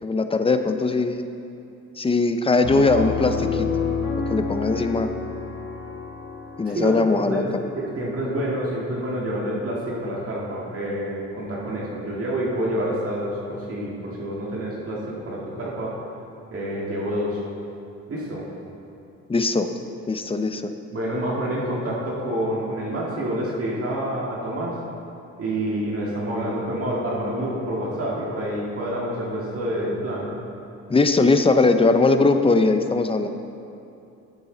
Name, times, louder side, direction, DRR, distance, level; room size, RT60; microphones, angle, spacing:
voice 1, 0.0-1.2 2.0-3.7 4.3-5.1 6.6-7.4 19.3-19.7 20.1-20.7 30.9-33.3, left 3 dB, 20° left, 8 dB, 0.6 m, -20 dB
Piano, 2.6-8.2, left 5 dB, 60° left, 2.0 m, -29 dB
voice 2, 6.6-16.0 16.5-17.4 18.1-18.5 20.9-24.8 25.4-30.4, right 1 dB, 50° right, -5 dB, 1.9 m, -28 dB
12.5 x 7.1 x 3.9 m, 2.7 s
cardioid pair, 90°, 30 cm